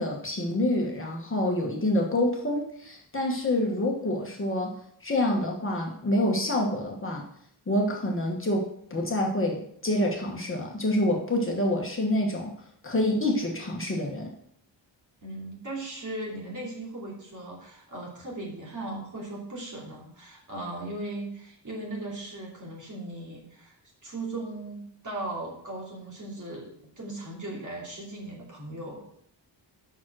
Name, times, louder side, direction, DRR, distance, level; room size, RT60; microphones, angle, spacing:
voice 1, 0.0-4.7 5.0-7.2 7.7-12.5 12.8-14.3, left 1 dB, 30° left, 0 dB, 1.3 m, -27 dB
voice 2, 15.2-23.7 24.0-29.2, right 2 dB, 40° right, -3 dB, 2.8 m, -38 dB
7.4 x 6.0 x 6.1 m, 0.68 s
wide cardioid pair, 165°, 45 cm